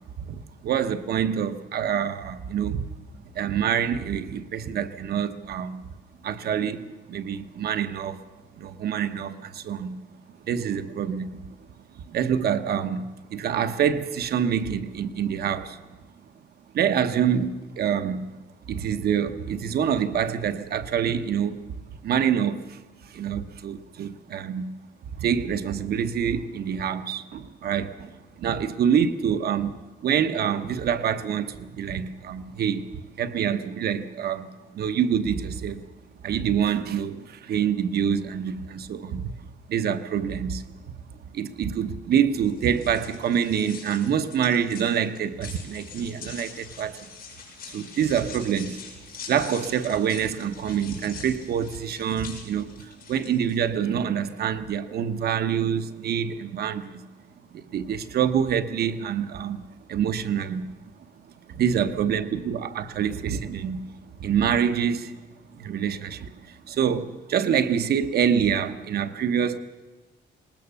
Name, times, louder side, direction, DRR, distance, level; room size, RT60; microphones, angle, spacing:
voice 1, 0.2-2.9 3.3-5.8 6.2-8.2 8.6-10.0 10.5-11.4 12.1-15.8 16.7-18.3 18.7-21.6 22.0-24.7 25.2-29.8 30.0-32.8 33.2-34.5 34.7-35.8 36.2-39.3 39.7-40.7 41.3-47.0 47.7-48.8 49.3-57.0 57.5-59.6 59.9-60.7 61.5-65.2 65.5-69.6, right 8 dB, 65° right, 1.0 m, -26 dB
sound 1, 42.4-53.6, left 6 dB, 55° left, 6.7 m, -44 dB
20.0 x 19.5 x 7.0 m
cardioid pair, 150°, 18 cm